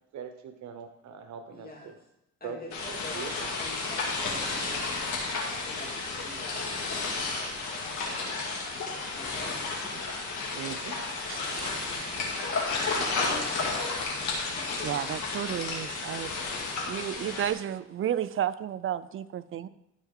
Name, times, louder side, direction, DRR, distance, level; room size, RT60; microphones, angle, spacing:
voice 1, 0.1-2.0 2.4-3.5 4.5-4.7 7.8-8.2 10.5-11.0 11.9-12.3 13.2-13.6, right 7 dB, 65° right, 7 dB, 0.8 m, -43 dB
voice 2, 1.5-1.9 2.4-5.0 5.6-7.6 8.2-8.6 9.1-10.0, left 1 dB, 30° left, -2 dB, 2.7 m, -46 dB
sound 1, 2.7-17.5, left 3 dB, 70° left, 2.2 m, -32 dB
voice 3, 11.3-12.3 14.8-16.4 16.8-19.7, right 10 dB, 45° right, 15 dB, 0.4 m, -33 dB
12.5 x 4.6 x 3.7 m, 0.84 s
cardioid pair, 90°, 30 cm